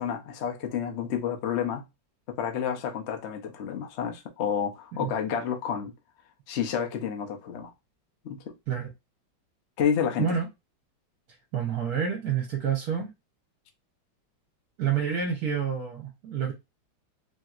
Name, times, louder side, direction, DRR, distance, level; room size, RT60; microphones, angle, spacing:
voice 1, 0.0-1.8 2.3-5.9 6.5-7.7 8.2-8.5 9.8-10.4, left 8 dB, 90° left, 0.6 m, -30 dB
voice 2, 11.5-13.1 14.8-16.5, right 7 dB, 60° right, 1.1 m, -28 dB
3.2 x 2.8 x 2.4 m
omnidirectional pair, 2.1 m